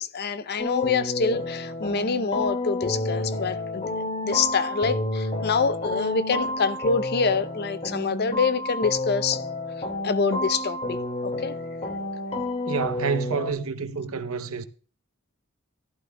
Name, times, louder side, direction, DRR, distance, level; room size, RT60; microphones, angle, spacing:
voice 1, 0.0-3.8 4.2-9.4 10.0-11.5, left 5 dB, 50° left, 0.6 m, -26 dB
sound 1, 0.6-13.5, left 2 dB, 30° left, 2.0 m, -30 dB
voice 2, 12.7-14.6, right 5 dB, 70° right, 0.8 m, -28 dB
14.5 x 12.0 x 2.2 m
head